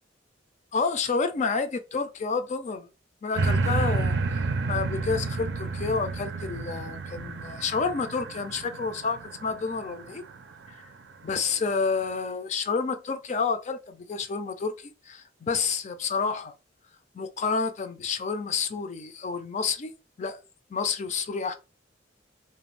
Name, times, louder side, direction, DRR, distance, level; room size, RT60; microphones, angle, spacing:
voice 1, 0.7-2.9 3.2-4.1 4.7-10.2 10.7-10.8 11.2-16.5 17.1-19.9 20.2-20.4 20.7-21.5, left 5 dB, 40° left, 0.4 m, -29 dB
sound 1, 3.4-10.7 11.3-11.4, right 3 dB, 65° right, 0.5 m, -30 dB
2.5 x 2.2 x 3.2 m
head